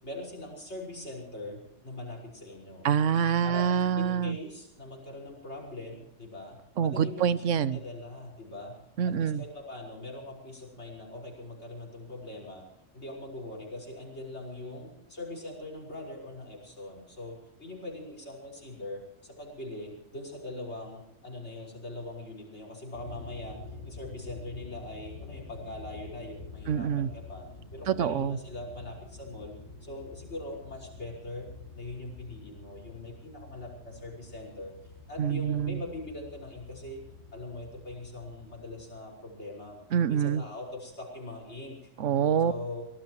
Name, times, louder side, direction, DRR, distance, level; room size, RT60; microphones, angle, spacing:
voice 1, 0.0-2.9 3.4-8.8 9.0-12.6 12.9-27.4 27.7-29.5 29.8-31.5 31.7-37.0 37.3-39.8 40.1-41.9 42.4-42.9, left 2 dB, 65° left, 0 dB, 5.7 m, -42 dB
voice 2, 2.8-4.4 6.8-7.8 9.0-9.4 26.7-27.1 27.9-28.4 35.2-35.8 39.9-40.4 42.0-42.5, right 8 dB, 80° right, 16 dB, 1.1 m, -26 dB
sound 1, 22.9-38.9, left 4 dB, 35° left, 5.6 m, -48 dB
24.0 x 19.0 x 3.1 m, 0.83 s
omnidirectional pair, 1.3 m